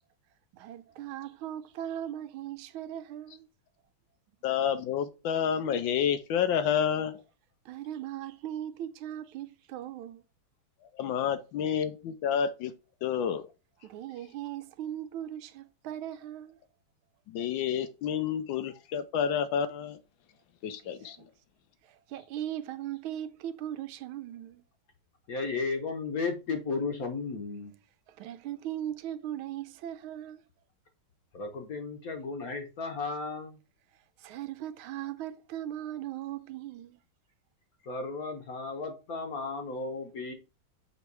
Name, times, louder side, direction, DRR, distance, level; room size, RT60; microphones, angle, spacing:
voice 1, 0.5-3.5 7.6-10.2 13.8-16.6 21.2-21.3 21.8-24.6 28.1-30.4 34.2-37.0, right 11 dB, 85° right, 1.4 m, -39 dB
voice 2, 4.4-7.2 10.9-12.7 13.0-13.5 17.3-20.0 20.6-21.2, left 8 dB, 75° left, 1.3 m, -29 dB
voice 3, 25.3-27.7 31.3-33.6 37.8-40.3, left 4 dB, 50° left, 1.2 m, -34 dB
6.7 x 3.1 x 4.6 m
omnidirectional pair, 2.3 m